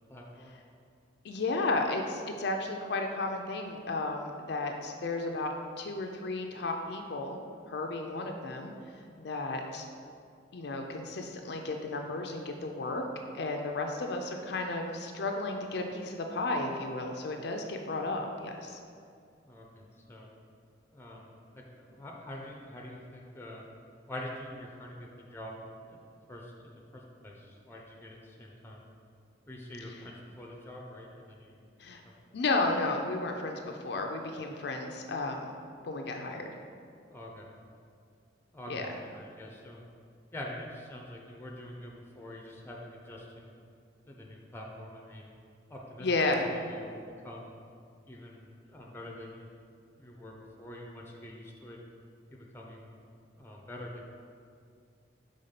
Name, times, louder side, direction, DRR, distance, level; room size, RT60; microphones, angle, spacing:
voice 1, 0.1-0.6 19.4-20.3 20.9-23.6 24.1-25.6 25.8-26.0 26.3-28.8 29.5-31.6 32.0-32.1 37.1-37.5 38.5-39.8 40.3-43.5 44.1-45.3 45.7-46.1 46.3-47.5 48.1-49.5 49.9-51.8 52.3-53.0 53.3-54.0, left 1 dB, 15° left, -1 dB, 0.7 m, -45 dB
voice 2, 1.2-8.7 9.2-9.9 10.5-13.0 13.3-18.8 31.8-32.0 32.3-35.5 35.8-36.5 38.7-38.8 46.0-46.5, left 2 dB, 60° left, 3 dB, 0.5 m, -33 dB
5.2 x 3.6 x 5.7 m, 2.3 s
head